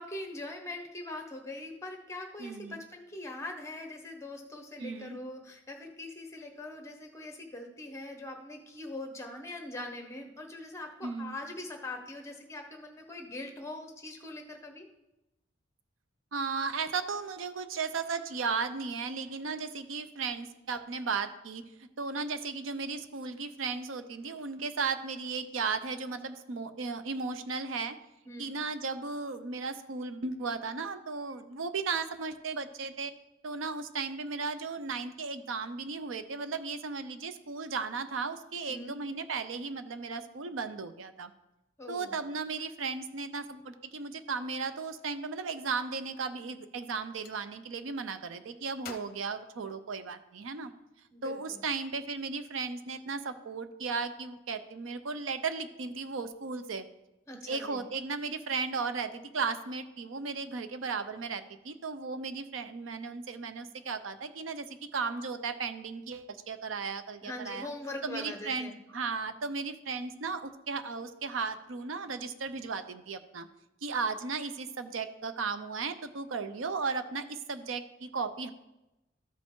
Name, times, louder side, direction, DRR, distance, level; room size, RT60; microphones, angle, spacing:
voice 1, 0.0-14.9 28.3-28.6 38.7-39.0 41.8-42.2 51.1-51.6 57.3-57.8 67.2-68.8, left 2 dB, 15° left, 4 dB, 1.0 m, -42 dB
voice 2, 2.4-2.8 4.8-5.2 11.0-11.4 16.3-28.0 28.4-33.1 33.4-41.3 41.9-50.7 51.2-56.9 57.5-67.7 68.0-73.5 73.8-78.5, right 4 dB, 90° right, 10 dB, 0.6 m, -35 dB
Gunshot gunfire, 46.9-47.4 48.8-50.3, left 5 dB, 50° left, 0.7 m, -50 dB
13.0 x 5.0 x 3.7 m, 0.95 s
head